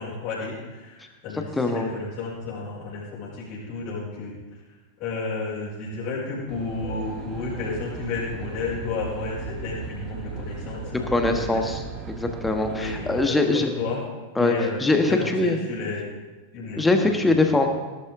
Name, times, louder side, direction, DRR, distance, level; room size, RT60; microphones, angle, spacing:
voice 1, 0.0-4.4 5.0-11.7 12.6-14.0 14.4-16.0 16.5-17.1 17.4-17.5, left 3 dB, 40° left, -10 dB, 5.6 m, -32 dB
voice 2, 1.6-1.9 11.1-13.7 14.4-14.5 14.8-15.6 16.8-17.7, left 2 dB, 10° left, 5 dB, 1.5 m, -22 dB
Aircraft, 6.5-13.2, right 5 dB, 30° right, 1.3 m, -37 dB
19.0 x 12.0 x 3.8 m, 1.2 s
figure-of-eight pair, 90°, 0 cm